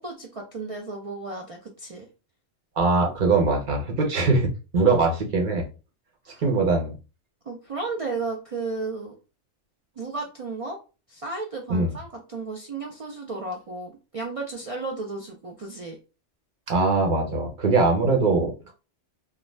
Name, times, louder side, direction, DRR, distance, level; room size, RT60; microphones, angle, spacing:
voice 1, 0.0-2.1 6.3-6.4 7.4-9.1 10.0-10.8 11.1-16.0, right 3 dB, 65° right, 1 dB, 0.3 m, -34 dB
voice 2, 2.8-5.6 6.4-6.9 11.7-11.9 16.7-18.5, right 3 dB, 50° right, 0 dB, 0.8 m, -22 dB
2.5 x 2.2 x 3.1 m, 0.32 s
omnidirectional pair, 1.2 m